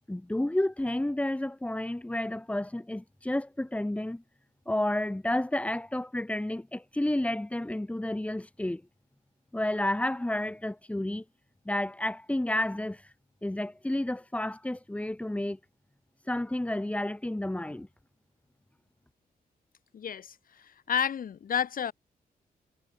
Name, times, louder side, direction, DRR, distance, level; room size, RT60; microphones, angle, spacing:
voice 1, 0.1-4.2 4.7-8.8 9.5-11.2 11.6-13.0 13.4-15.6 16.3-17.9, left 1 dB, 10° left, 1.3 m, -31 dB
voice 2, 19.9-21.9, left 8 dB, 65° left, 3.0 m, -31 dB
cardioid pair, 95°, 16 cm